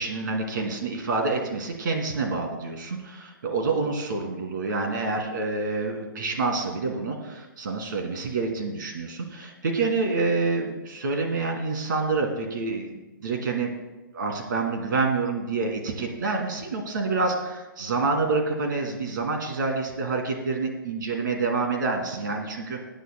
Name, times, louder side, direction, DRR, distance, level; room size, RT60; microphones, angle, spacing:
voice 1, 0.0-13.7 14.1-22.9, right 3 dB, 65° right, 2 dB, 2.5 m, -27 dB
19.5 x 9.1 x 2.2 m, 1.1 s
hypercardioid pair, 160°, 11 cm